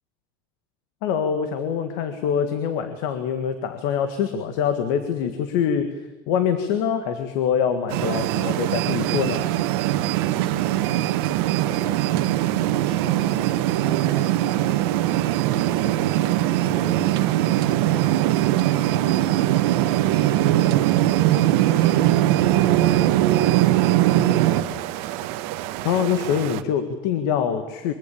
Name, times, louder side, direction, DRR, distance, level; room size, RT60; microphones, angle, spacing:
voice 1, 1.0-5.9 6.3-9.5 25.8-27.9, left 8 dB, 55° left, 9 dB, 1.9 m, -24 dB
sound 1, 7.9-26.6, right 14 dB, 50° right, 1.3 m, -32 dB
sound 2, 7.9-24.6, right 14 dB, 75° right, 1.4 m, -21 dB
voice 2, 11.4-15.1 16.4-24.7, equal, 10° left, -3 dB, 6.0 m, -41 dB
23.5 x 15.5 x 8.8 m, 1.2 s
cardioid pair, 175°, 13 cm